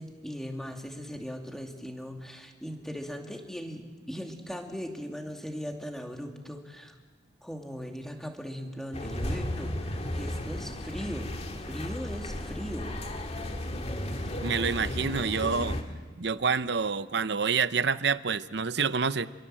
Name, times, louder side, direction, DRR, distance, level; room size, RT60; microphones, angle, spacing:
voice 1, 0.0-7.0 7.4-12.9, equal, ahead, 3 dB, 2.5 m, -39 dB
sound 1, 8.9-15.8, left 1 dB, 35° left, 2.2 m, -34 dB
voice 2, 14.4-15.8 16.2-19.3, right 5 dB, 60° right, 14 dB, 0.8 m, -27 dB
29.0 x 23.0 x 7.7 m, 1.5 s
head